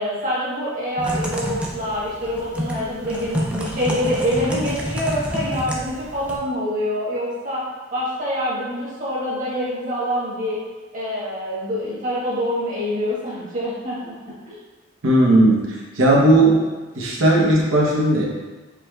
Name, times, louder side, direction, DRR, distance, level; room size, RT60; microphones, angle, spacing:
voice 1, 0.0-7.6 7.9-10.6 10.9-14.1 14.5-14.6, equal, 40° right, -7 dB, 1.3 m, -25 dB
Typing, 1.0-6.4, equal, 5° right, 0.4 m, -28 dB
voice 2, 15.0-16.6 16.9-18.3, right 1 dB, 75° right, -3 dB, 0.9 m, -16 dB
4.9 x 3.2 x 2.4 m, 1.3 s
head